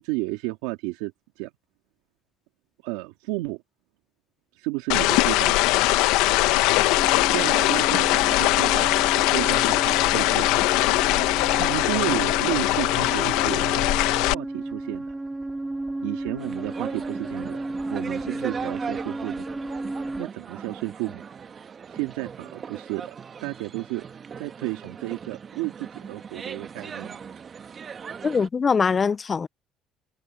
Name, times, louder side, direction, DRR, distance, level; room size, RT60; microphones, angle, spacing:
voice 1, 0.0-1.5 2.8-3.6 4.5-5.6 7.0-7.1 7.3-8.9 9.3-10.6 11.5-13.8 14.2-15.1 16.0-17.6 17.9-19.5 20.2-21.2 21.9-23.2 23.4-24.0 24.4-27.2, right 21 dB, 85° right, 2.3 m, -32 dB
sound 1, 4.9-14.3, left 19 dB, 80° left, 1.3 m, -21 dB
sound 2, 7.0-20.3, right 2 dB, 15° right, 3.2 m, -33 dB
sound 3, 16.4-28.5, right 6 dB, 40° right, 1.7 m, -39 dB
voice 2, 28.2-29.5, left 5 dB, 35° left, 0.5 m, -22 dB
supercardioid pair, 80°, 0 cm